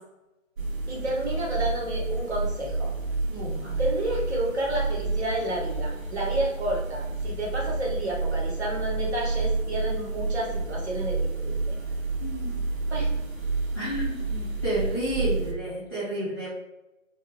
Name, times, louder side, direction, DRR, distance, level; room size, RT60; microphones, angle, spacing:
sound 1, 0.6-15.5, right 3 dB, 80° right, 0.9 m, -29 dB
voice 1, 0.9-2.9 3.8-11.8 12.9-13.1, right 1 dB, 55° right, -3 dB, 1.2 m, -30 dB
voice 2, 3.3-3.8 12.2-12.5 13.7-16.5, right 1 dB, 10° right, -16 dB, 1.1 m, -31 dB
2.5 x 2.5 x 3.2 m, 0.95 s
figure-of-eight pair, 155°, 40 cm